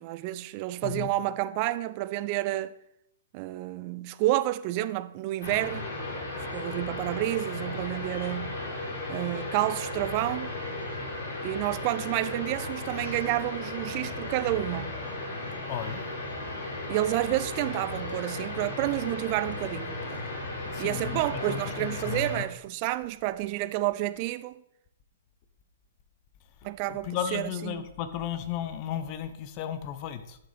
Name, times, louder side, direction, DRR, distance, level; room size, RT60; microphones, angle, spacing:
voice 1, 0.0-2.7 3.3-5.9 6.5-8.6 9.1-10.5 11.4-15.0 16.9-20.2 20.8-24.6 26.6-27.9, right 16 dB, 40° right, 0.5 m, -30 dB
sound 1, 5.4-22.4, left 2 dB, 55° left, 3.7 m, -35 dB
voice 2, 15.7-16.0 20.7-22.4 27.1-30.4, left 10 dB, 35° left, 0.8 m, -34 dB
11.0 x 6.5 x 3.4 m
figure-of-eight pair, 120°, 0 cm